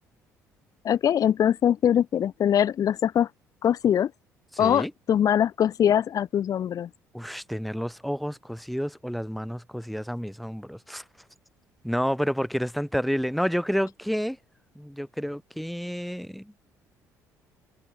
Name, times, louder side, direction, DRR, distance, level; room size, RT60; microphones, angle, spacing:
voice 1, 0.8-3.3 3.6-4.1 4.6-6.9, left 9 dB, 45° left, 1.3 m, -22 dB
voice 2, 4.6-4.9 7.1-11.0 11.8-14.4 14.8-16.5, equal, ahead, 4.0 m, -30 dB
figure-of-eight pair, 50°, 8 cm